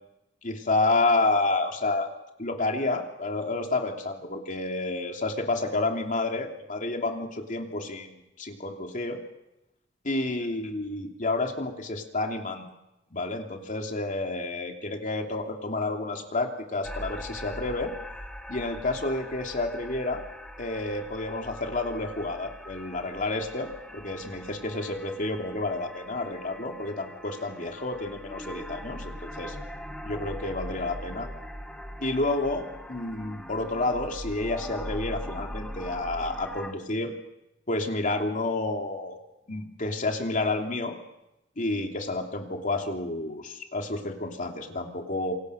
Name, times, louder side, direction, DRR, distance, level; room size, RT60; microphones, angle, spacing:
voice 1, 0.4-2.1 2.4-9.2 10.0-12.6 13.1-17.9 18.5-20.2 20.6-29.6 30.0-31.3 32.0-37.1 37.7-39.2 39.5-40.9 41.6-45.3, left 2 dB, 45° left, 3 dB, 3.0 m, -30 dB
sound 1, 16.8-36.7, equal, 5° left, 2.0 m, -41 dB
27.5 x 24.0 x 6.5 m, 0.91 s
head